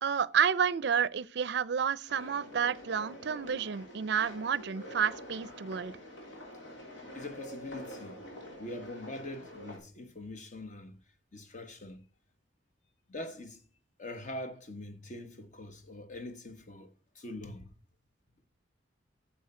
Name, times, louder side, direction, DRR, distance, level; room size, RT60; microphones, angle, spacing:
voice 1, 0.0-5.9, right 7 dB, 60° right, 0.4 m, -30 dB
sound 1, 2.1-9.8, equal, 75° left, 3.3 m, -46 dB
voice 2, 7.1-8.2 8.6-11.0 11.3-12.1 13.1-13.6 14.0-17.7, left 1 dB, 40° left, 1.1 m, -43 dB
9.4 x 7.2 x 4.3 m
head